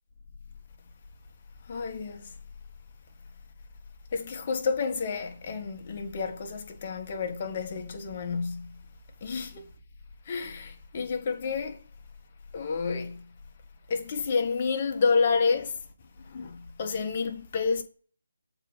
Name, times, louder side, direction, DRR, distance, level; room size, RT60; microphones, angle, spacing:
voice 1, 1.7-2.3 4.1-8.8 9.2-9.7 10.2-11.8 12.5-13.3 13.9-15.8 16.2-17.8, left 5 dB, 35° left, 1.4 m, -29 dB
7.3 x 4.1 x 6.6 m
figure-of-eight pair, 150°, 0 cm